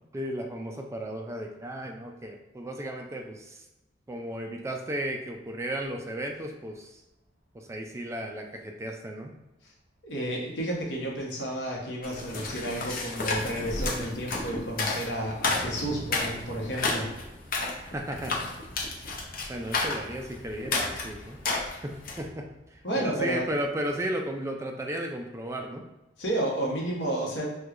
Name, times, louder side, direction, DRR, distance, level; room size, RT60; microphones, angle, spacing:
voice 1, 0.1-3.6 4.1-7.0 7.5-9.3 17.9-18.4 19.5-21.4 21.8-25.8, right 1 dB, 15° right, 2 dB, 0.3 m, -34 dB
sound 1, 6.9-7.0 7.6-7.7 9.7-9.8 10.2-10.3 11.4-11.5 11.7-24.0, right 1 dB, 60° right, 0.9 m, -49 dB
voice 2, 10.0-17.1 22.8-23.4 26.2-27.5, right 1 dB, 75° left, -2 dB, 0.9 m, -31 dB
sound 2, 12.0-22.3, left 3 dB, 55° left, 0.6 m, -32 dB
4.4 x 2.3 x 2.4 m, 0.99 s
head